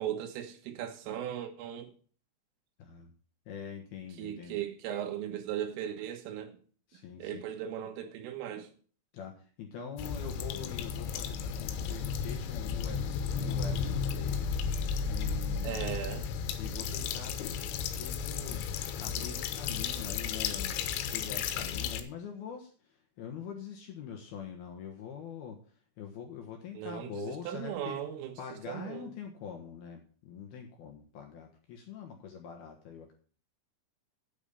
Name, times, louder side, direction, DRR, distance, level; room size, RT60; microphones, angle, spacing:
voice 1, 0.0-1.9 4.2-6.6 7.2-8.7 15.6-16.3 26.8-28.3 28.7-29.1, right 10 dB, 80° right, 4.0 m, -37 dB
voice 2, 2.8-3.1 3.5-4.6 6.9-7.4 9.1-14.5 15.0-16.0 16.6-18.6 19.0-25.6 26.0-28.0 28.4-33.1, left 7 dB, 70° left, 2.5 m, -44 dB
sound 1, 10.0-22.0, left 6 dB, 85° left, 3.7 m, -34 dB
9.3 x 8.8 x 5.6 m
omnidirectional pair, 5.9 m